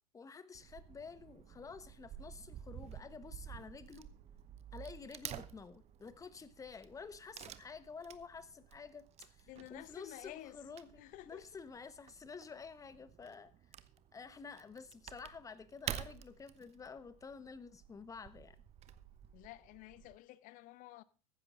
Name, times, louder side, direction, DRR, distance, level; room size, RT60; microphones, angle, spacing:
voice 1, 0.1-4.1 4.7-10.9 11.3-13.5 14.1-18.6, left 5 dB, 15° left, 1.1 m, -50 dB
Wood / Tearing, 0.6-20.2, right 11 dB, 35° right, 0.9 m, -51 dB
voice 2, 9.5-10.6 11.0-11.6 19.3-21.0, left 16 dB, 45° left, 0.8 m, -52 dB
14.5 x 10.5 x 3.7 m
figure-of-eight pair, 85°, 20 cm